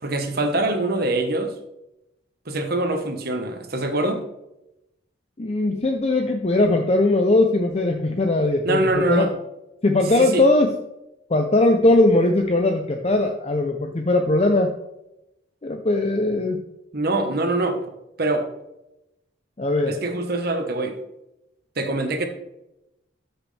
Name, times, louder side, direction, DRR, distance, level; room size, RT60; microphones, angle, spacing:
voice 1, 0.0-1.5 2.5-4.2 8.6-9.3 10.1-10.5 16.9-17.8 18.2-18.5 19.9-21.0 21.8-22.3, right 2 dB, 50° right, 6 dB, 1.2 m, -24 dB
voice 2, 5.4-9.3 9.8-10.8 11.3-14.7 15.6-16.6 19.6-20.0, left 2 dB, 30° left, 5 dB, 0.6 m, -20 dB
13.5 x 6.1 x 3.4 m, 0.89 s
head